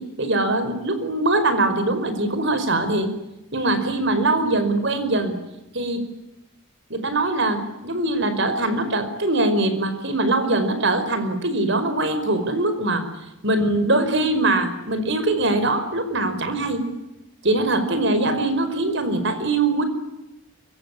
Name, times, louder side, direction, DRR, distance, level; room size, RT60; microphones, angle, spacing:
voice 1, 0.0-3.1 3.5-5.3 5.7-6.0 6.9-13.0 13.4-16.8 17.4-19.8, right 2 dB, 55° right, 10 dB, 5.1 m, -22 dB
24.5 x 24.0 x 9.8 m, 0.91 s
head